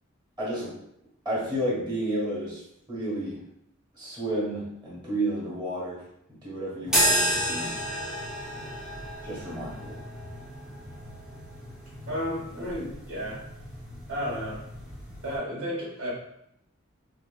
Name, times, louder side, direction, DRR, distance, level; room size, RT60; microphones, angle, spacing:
voice 1, 0.4-0.8 1.2-2.6 2.9-3.4 4.0-6.0 6.3-7.8 9.2-10.0, right 1 dB, 20° right, -6 dB, 1.2 m, -31 dB
sound 1, 6.9-15.4, equal, 5° right, 0.6 m, -32 dB
voice 2, 12.1-13.4 14.1-14.6 15.2-16.1, equal, 85° right, -7 dB, 1.2 m, -32 dB
4.3 x 2.1 x 2.2 m, 0.76 s
head